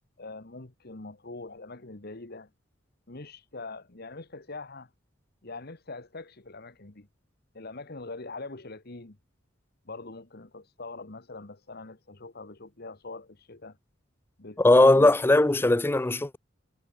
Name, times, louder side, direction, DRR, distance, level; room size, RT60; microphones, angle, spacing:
voice 1, 0.2-2.5 3.1-4.9 5.4-7.1 7.5-9.2 9.8-13.8 14.4-15.1, left 3 dB, 50° left, 1.5 m, -43 dB
voice 2, 14.6-16.4, left 2 dB, 10° left, 0.4 m, -19 dB
head